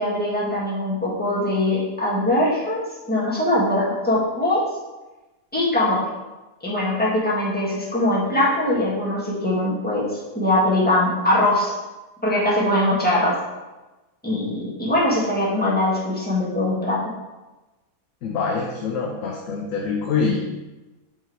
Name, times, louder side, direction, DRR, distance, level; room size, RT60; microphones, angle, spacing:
voice 1, 0.0-4.6 5.5-6.0 6.6-10.1 10.3-11.7 12.2-13.3 14.2-17.0, left 1 dB, 5° left, -7 dB, 1.5 m, -21 dB
voice 2, 18.2-20.4, left 5 dB, 70° left, 0 dB, 1.1 m, -25 dB
6.0 x 3.7 x 4.5 m, 1.1 s
omnidirectional pair, 1.5 m